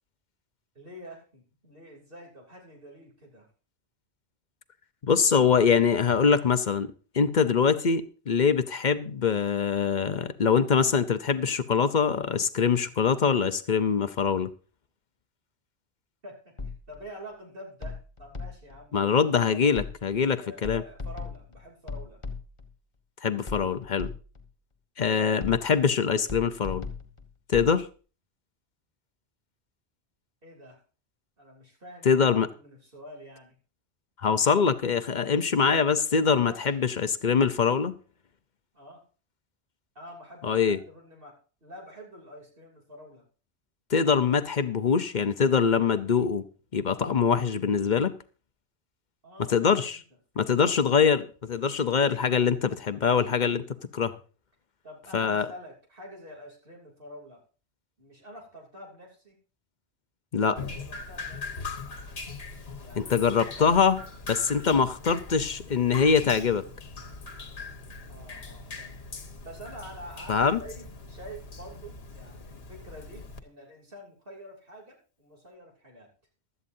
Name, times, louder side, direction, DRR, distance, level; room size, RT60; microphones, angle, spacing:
voice 1, 0.7-3.5 16.2-19.0 19.5-19.7 20.4-22.2 30.4-30.8 31.4-33.6 36.5-36.7 38.7-39.0 39.9-43.2 49.2-50.0 54.8-57.4 58.0-59.4 60.7-61.7 62.8-64.0 64.4-64.7 68.1-69.0 69.4-76.1, equal, 55° right, 3.2 m, -47 dB
voice 2, 5.0-6.9 7.1-14.5 18.9-20.8 23.2-24.1 25.0-26.9 27.5-27.9 32.0-32.5 34.2-37.9 40.4-40.8 43.9-46.5 46.7-48.2 49.5-50.0 50.4-53.7 53.9-54.2 55.1-55.5 60.3-60.6 63.0-64.0 64.3-66.6 70.3-70.6, left 6 dB, 50° left, 0.8 m, -23 dB
sound 1, 16.6-17.1 17.8-18.9 19.8-20.3 20.6-22.8 23.5-24.5 25.4-25.9 26.3-27.8, left 4 dB, 30° left, 1.3 m, -38 dB
Drip, 60.6-73.4, left 4 dB, 65° left, 1.4 m, -41 dB
16.0 x 12.5 x 2.7 m
omnidirectional pair, 1.1 m